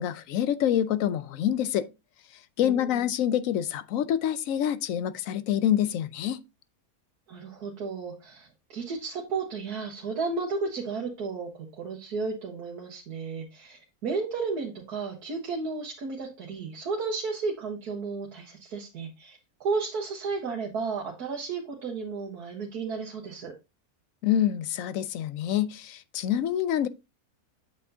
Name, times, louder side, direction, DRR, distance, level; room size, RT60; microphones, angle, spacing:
voice 1, 0.0-1.9 2.6-6.4 24.2-26.9, left 10 dB, 70° left, 1.0 m, -26 dB
voice 2, 2.6-3.1 7.3-23.5, right 4 dB, 85° right, 1.8 m, -33 dB
8.1 x 6.7 x 2.7 m
omnidirectional pair, 1.6 m